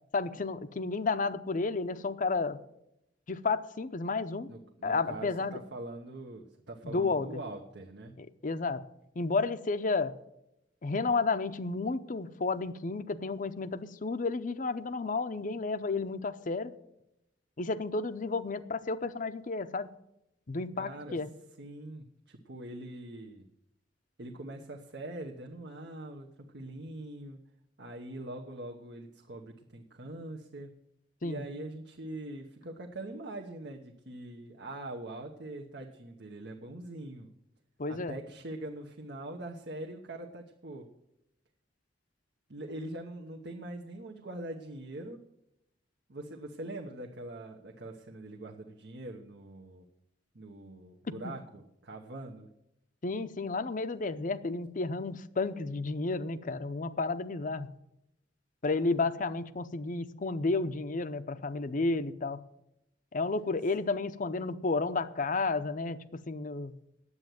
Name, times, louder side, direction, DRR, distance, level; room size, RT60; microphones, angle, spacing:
voice 1, 0.1-2.6 3.3-4.5 4.8-5.6 6.8-7.4 8.2-8.8 9.2-10.1 10.8-16.7 17.6-19.9 20.5-21.3 31.2-31.4 37.8-38.2 51.2-51.3 53.0-57.7 58.6-62.4 63.1-66.7, left 3 dB, 45° left, 13 dB, 0.7 m, -32 dB
voice 2, 4.5-8.1 20.8-21.2 21.6-23.4 24.2-27.4 27.8-30.7 31.2-37.3 37.9-40.9 42.5-45.2 46.1-49.9 50.3-52.5, right 1 dB, 70° right, 1 dB, 1.1 m, -43 dB
9.8 x 8.0 x 9.2 m, 0.83 s
head